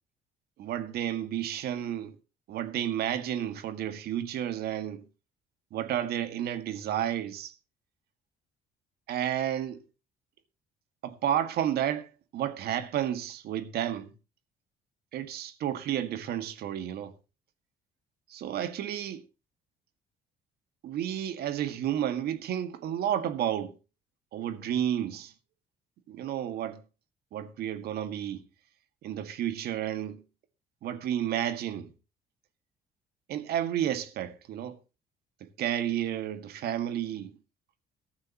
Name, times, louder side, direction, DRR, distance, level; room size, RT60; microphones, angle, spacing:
voice 1, 0.6-2.2 2.5-5.1 5.7-7.5 9.1-9.8 11.0-14.1 15.1-17.1 18.3-19.2 20.8-23.8 24.3-25.3 26.1-26.8 27.3-28.4 29.0-30.2 30.8-31.9 33.3-34.8 35.4-37.3, right 10 dB, 70° right, 1.9 m, -31 dB
14.5 x 14.5 x 2.9 m
cardioid pair, 110°, 17 cm